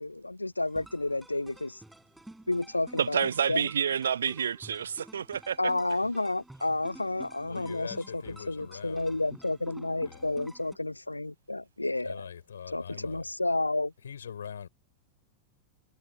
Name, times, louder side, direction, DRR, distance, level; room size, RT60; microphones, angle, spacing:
voice 1, 0.0-1.8 2.5-3.7 5.6-8.2 8.5-12.3 12.7-13.9, left 2 dB, 85° left, 0.4 m, -31 dB
sound 1, 0.7-10.8, right 1 dB, 5° right, 5.5 m, -51 dB
voice 2, 3.0-5.7, right 8 dB, 70° right, 0.3 m, -29 dB
voice 3, 7.5-9.2 10.0-10.3 12.0-13.3 14.0-14.7, left 8 dB, 70° left, 7.5 m, -43 dB
figure-of-eight pair, 90°, 0 cm